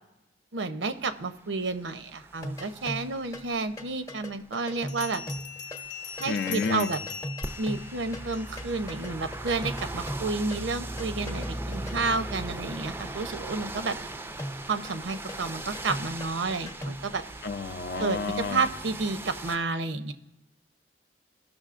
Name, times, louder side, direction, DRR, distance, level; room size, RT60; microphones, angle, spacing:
voice 1, 0.5-5.2 6.2-7.0 7.6-14.0 14.7-17.2 18.0-20.1, right 3 dB, 85° right, 9 dB, 0.6 m, -31 dB
sound 1, 1.0-3.8 5.1-19.6, right 1 dB, 15° right, 0.4 m, -39 dB
sound 2, 2.4-3.5 3.8-8.3 8.6-12.0 14.4-17.2, equal, 20° left, 0.7 m, -39 dB
Bell, 4.9-8.8, left 7 dB, 85° left, 0.9 m, -41 dB
voice 2, 6.2-6.9 17.4-18.6, left 4 dB, 60° left, 11 dB, 0.5 m, -30 dB
15.5 x 6.2 x 2.5 m, 0.96 s
head